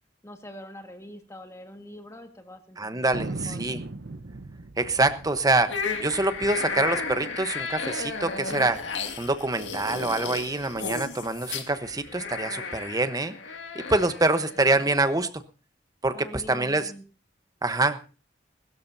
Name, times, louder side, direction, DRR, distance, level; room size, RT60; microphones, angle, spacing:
voice 1, 0.2-3.7 16.1-17.0, left 1 dB, 15° left, 5 dB, 1.7 m, -44 dB
voice 2, 2.8-3.8 4.8-8.8 9.2-13.3 13.7-15.3 16.0-16.8 17.6-18.0, right 2 dB, 20° right, 10 dB, 1.0 m, -25 dB
Thunder, 3.1-8.0 8.2-8.3 8.5-9.1 9.6-10.7, right 2 dB, 65° right, 0.8 m, -40 dB
sound 1, 5.7-14.8, left 4 dB, 75° left, 2.2 m, -34 dB
21.5 x 13.0 x 2.7 m, 0.34 s
head